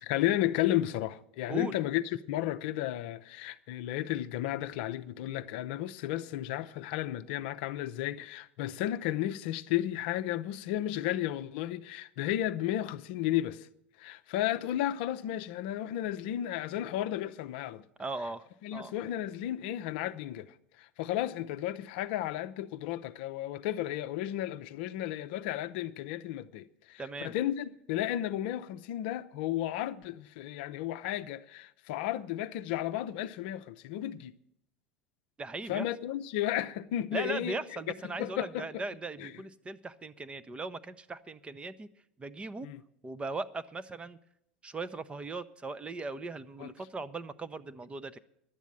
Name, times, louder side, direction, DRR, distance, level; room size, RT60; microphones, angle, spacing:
voice 1, 0.0-2.0 2.3-13.7 14.0-17.8 18.6-20.5 21.0-34.3 35.7-37.6 38.2-38.7 39.2-39.3 42.6-42.8 46.6-46.7, left 13 dB, 60° left, 0.6 m, -33 dB
voice 2, 18.0-18.5 18.7-19.0 27.0-27.3 35.4-35.9 37.1-41.9 42.2-42.7 43.0-44.2 44.6-48.2, right 3 dB, 20° right, 0.6 m, -39 dB
11.0 x 8.2 x 8.8 m
hypercardioid pair, 80°, 6 cm